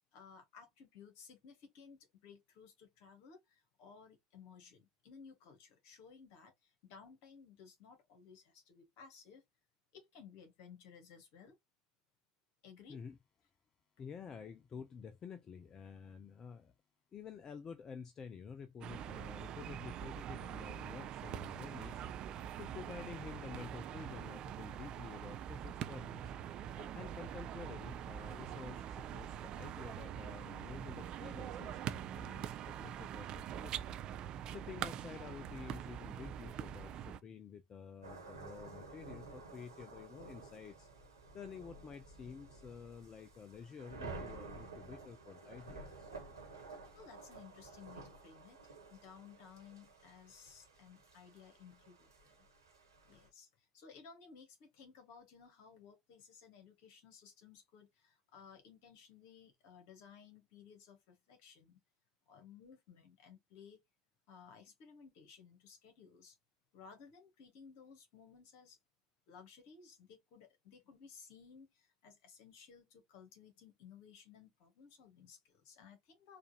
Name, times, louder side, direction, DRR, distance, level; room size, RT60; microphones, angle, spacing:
voice 1, 0.1-9.4 9.9-11.6 12.6-13.0 46.9-52.5 53.1-61.8 62.3-63.8 64.3-66.4 66.7-68.8 69.3-76.4, left 6 dB, 55° left, 1.6 m, -58 dB
voice 2, 14.0-16.7 17.1-22.0 22.6-26.3 26.7-33.7 34.5-40.9 41.3-46.1, left 6 dB, 30° left, 0.5 m, -50 dB
sound 1, 18.8-37.2, right 10 dB, 45° right, 0.5 m, -44 dB
sound 2, 38.0-53.3, right 3 dB, 85° right, 1.4 m, -52 dB
4.3 x 2.6 x 2.8 m
figure-of-eight pair, 70°, 2 cm